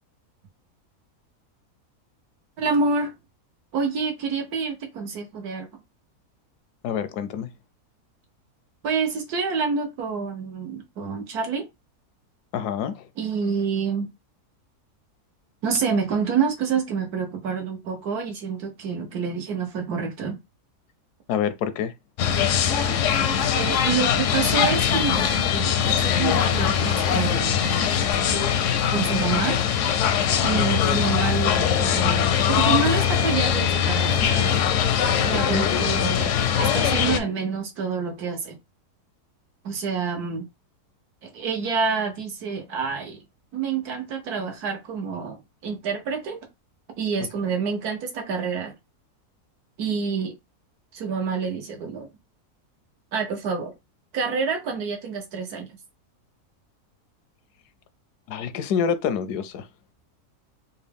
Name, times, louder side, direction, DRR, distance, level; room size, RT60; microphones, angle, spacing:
voice 1, 2.6-3.1 3.7-5.7 8.8-11.7 13.2-14.1 15.6-20.4 23.5-27.6 28.9-29.6 30.4-34.6 35.2-38.6 39.6-40.5 41.2-43.2 43.5-46.4 47.0-48.7 49.8-50.3 50.9-52.1 53.1-53.7 54.1-55.7, right 5 dB, 75° right, 1.5 m, -27 dB
voice 2, 6.8-7.5 12.5-13.1 21.3-21.9 35.3-35.8 58.3-59.7, left 7 dB, 85° left, 1.1 m, -27 dB
sound 1, 22.2-37.2, left 8 dB, 70° left, 0.8 m, -22 dB
4.0 x 2.3 x 3.4 m
omnidirectional pair, 1.7 m